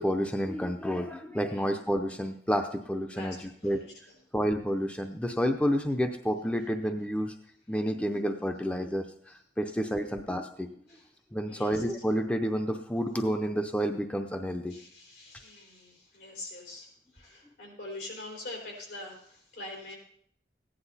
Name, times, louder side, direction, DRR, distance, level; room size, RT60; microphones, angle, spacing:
voice 1, 0.0-3.8 4.3-7.3 7.7-10.7 11.3-14.8, equal, 5° left, 5 dB, 0.5 m, -30 dB
voice 2, 3.1-4.2 10.9-11.1 11.4-11.8 14.7-19.9, left 2 dB, 80° left, 0 dB, 4.2 m, -44 dB
15.0 x 10.0 x 4.1 m, 0.64 s
head